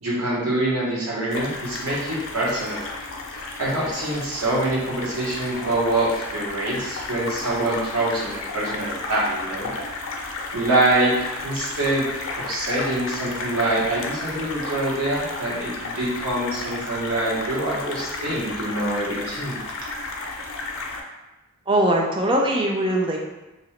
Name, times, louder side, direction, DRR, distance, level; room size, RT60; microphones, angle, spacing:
voice 1, 0.0-2.8 3.3-9.7 10.5-11.1 11.4-12.0 12.4-19.6, right 1 dB, 80° right, -6 dB, 1.1 m, -25 dB
sound 1, 1.3-21.0, left 3 dB, 60° left, 0.4 m, -33 dB
voice 2, 21.7-23.2, right 1 dB, 20° right, 0 dB, 0.4 m, -21 dB
2.8 x 2.8 x 3.1 m, 1.1 s
head